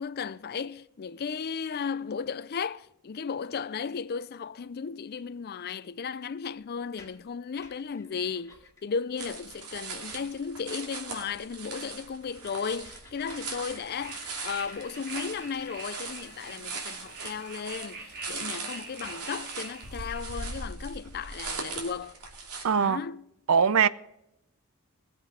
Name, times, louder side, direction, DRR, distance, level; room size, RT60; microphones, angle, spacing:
voice 1, 0.0-8.6 8.8-22.1 22.7-23.3, left 6 dB, 45° left, 0.4 m, -35 dB
sound 1, 6.8-8.9 9.4-9.5 9.7-10.2 10.7-10.8 11.2-11.3 11.6-11.7 12.0-17.7 19.1-19.2 19.5-20.8 21.4-21.5 21.8-22.3, left 3 dB, 15° left, 2.2 m, -53 dB
sound 2, 9.2-22.6, right 4 dB, 85° right, 2.8 m, -40 dB
sound 3, 13.9-20.2, right 3 dB, 50° right, 2.7 m, -45 dB
voice 2, 22.6-23.0 23.5-23.9, right 6 dB, 65° right, 0.5 m, -21 dB
20.5 x 7.7 x 4.9 m
head